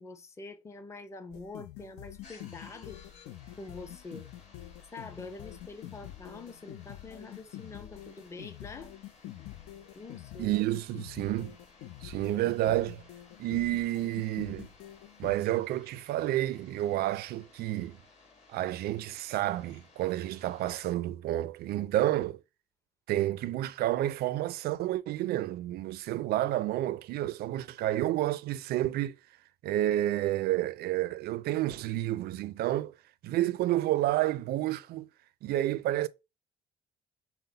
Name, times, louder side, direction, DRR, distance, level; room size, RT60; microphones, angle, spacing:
voice 1, 0.0-3.0 3.6-4.3 4.9-8.9 9.9-10.5, left 3 dB, 15° left, 0.6 m, -45 dB
sound 1, 1.3-15.4, left 14 dB, 80° left, 0.4 m, -46 dB
sound 2, 2.2-21.0, left 3 dB, 40° left, 1.7 m, -59 dB
voice 2, 10.4-11.6 12.0-13.0 13.4-14.7 15.2-18.0 18.5-22.4 23.1-29.2 29.6-32.9 33.2-35.1 35.4-36.1, right 14 dB, 65° right, 0.4 m, -30 dB
5.7 x 2.0 x 3.9 m
cardioid pair, 110°, 17 cm